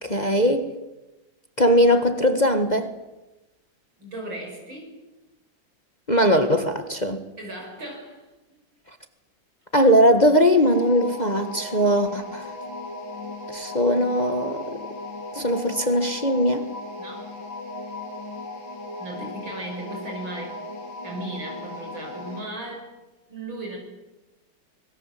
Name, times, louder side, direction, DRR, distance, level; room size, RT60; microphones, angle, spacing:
voice 1, 0.0-0.7 1.6-2.9 6.1-7.2 9.7-12.5 13.5-14.8 15.3-16.6, equal, 25° left, 7 dB, 1.6 m, -20 dB
voice 2, 4.0-5.0 7.4-8.6 17.0-17.3 19.0-20.7 21.0-22.9 23.3-23.8, right 2 dB, 75° right, 1 dB, 7.0 m, -36 dB
sound 1, 10.7-22.5, left 2 dB, 75° left, 5.0 m, -37 dB
25.5 x 21.5 x 7.7 m, 1.0 s
omnidirectional pair, 2.1 m